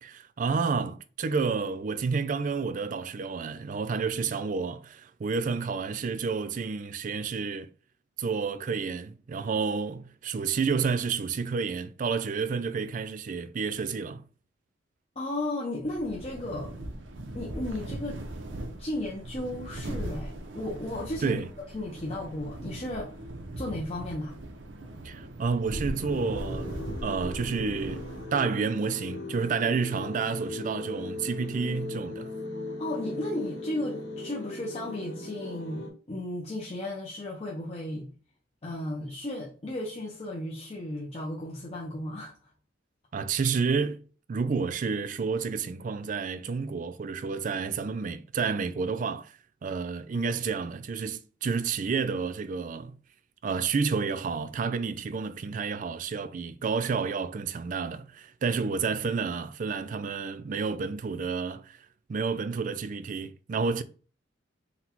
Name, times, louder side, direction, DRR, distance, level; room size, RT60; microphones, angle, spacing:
voice 1, 0.0-7.7 8.2-14.2 21.2-21.5 25.0-26.8 27.0-32.3 43.1-44.0 44.3-53.0 53.4-61.8 62.1-63.8, right 5 dB, 45° right, 0.4 m, -30 dB
voice 2, 15.2-16.7 17.3-18.2 18.8-21.4 21.7-23.2 23.6-24.4 32.8-38.1 38.6-42.3 50.1-50.3, left 1 dB, 35° left, 0.7 m, -34 dB
sound 1, 15.8-28.6, right 1 dB, 80° right, 0.7 m, -39 dB
sound 2, 26.0-35.9, left 2 dB, 85° left, 1.1 m, -38 dB
4.0 x 2.3 x 4.4 m
head